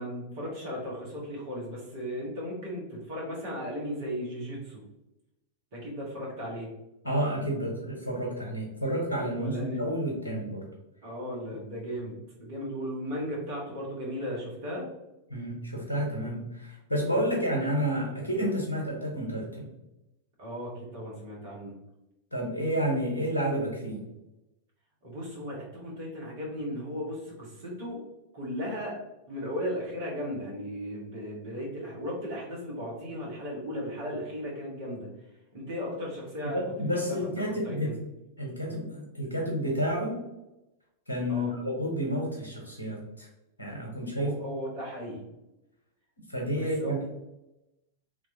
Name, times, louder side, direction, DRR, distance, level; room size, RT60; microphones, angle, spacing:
voice 1, 0.0-4.8 5.7-6.7 9.3-9.8 11.0-14.9 20.4-21.8 25.0-28.0 28.3-29.0 29.3-35.1 35.5-36.6 37.0-37.1 37.5-38.0 41.3-41.5 44.2-45.3 46.6-46.9, equal, 55° right, -4 dB, 1.5 m, -36 dB
voice 2, 7.0-10.7 15.3-19.7 22.3-24.0 36.5-37.9 38.4-40.2 41.1-43.3 43.6-44.3 46.3-47.0, equal, 80° left, -1 dB, 1.1 m, -30 dB
3.2 x 3.1 x 2.7 m, 0.94 s
figure-of-eight pair, 90°, 0 cm